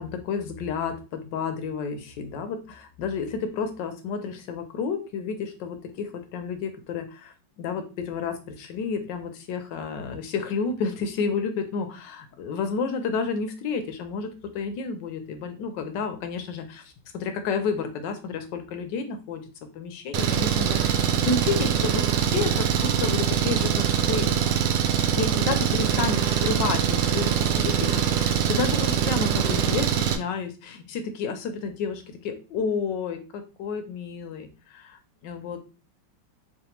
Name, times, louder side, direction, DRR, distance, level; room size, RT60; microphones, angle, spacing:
voice 1, 0.0-19.4 19.7-24.4 25.2-35.6, left 5 dB, 80° left, 7 dB, 1.3 m, -31 dB
Engine, 20.1-30.2, right 8 dB, 85° right, 1.3 m, -23 dB
4.1 x 3.3 x 2.9 m, 0.32 s
omnidirectional pair, 2.0 m